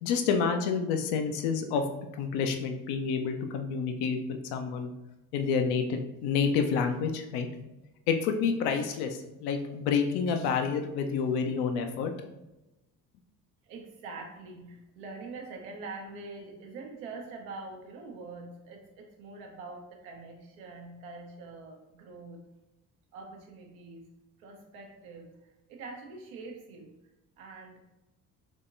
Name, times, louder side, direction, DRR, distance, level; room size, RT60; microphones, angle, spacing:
voice 1, 0.0-1.8 2.2-4.2 4.5-4.9 5.3-7.5 8.1-12.1, left 6 dB, 55° left, 5 dB, 0.6 m, -28 dB
voice 2, 13.6-22.4 23.1-24.1 24.4-25.3 25.7-26.9 27.4-27.8, right 3 dB, 65° right, 2 dB, 0.8 m, -44 dB
3.6 x 3.5 x 2.5 m, 0.97 s
figure-of-eight pair, 45°, 46 cm